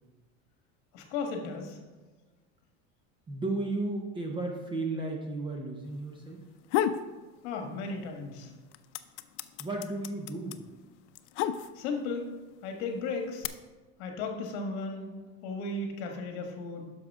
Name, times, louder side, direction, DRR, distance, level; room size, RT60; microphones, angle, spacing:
voice 1, 0.9-1.8 7.4-8.5 11.8-12.3 12.6-13.5 14.0-15.1 15.4-16.8, left 3 dB, 65° left, 3 dB, 1.5 m, -35 dB
voice 2, 3.3-6.4 9.6-10.6, right 2 dB, 15° right, 1 dB, 0.5 m, -34 dB
sound 1, 6.4-7.1 7.5-8.2 8.5-12.1 12.8-13.5, left 10 dB, 80° left, 0.6 m, -31 dB
9.8 x 6.4 x 3.5 m, 1.2 s
cardioid pair, 175°, 35 cm